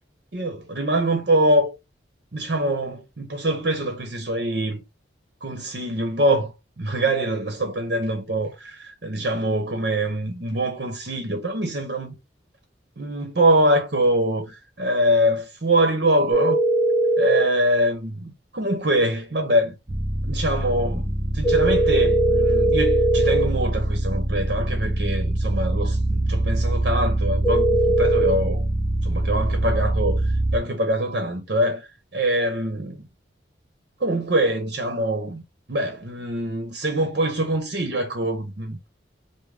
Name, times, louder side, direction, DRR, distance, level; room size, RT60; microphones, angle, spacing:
voice 1, 0.3-1.8 2.3-4.8 5.4-12.1 13.0-16.6 17.2-18.2 18.5-19.7 20.2-28.7 29.0-33.1 34.0-35.4 35.7-38.8, right 1 dB, 55° right, 0.9 m, -24 dB
sound 1, 16.3-17.4 21.4-23.4 27.4-28.3, right 1 dB, ahead, 1.0 m, -20 dB
sound 2, 19.9-30.6, right 1 dB, 25° right, 0.6 m, -24 dB
5.2 x 2.1 x 3.5 m
head